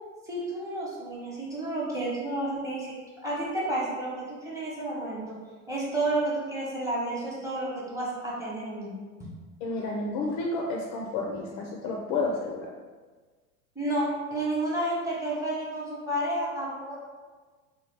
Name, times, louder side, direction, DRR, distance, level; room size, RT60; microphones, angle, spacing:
voice 1, 0.2-2.9 3.2-5.3 5.7-9.0 13.7-17.0, right 1 dB, 5° right, -5 dB, 0.9 m, -31 dB
voice 2, 9.6-12.7, left 3 dB, 40° left, -1 dB, 0.4 m, -31 dB
2.8 x 2.3 x 3.2 m, 1.4 s
hypercardioid pair, 100°, 44 cm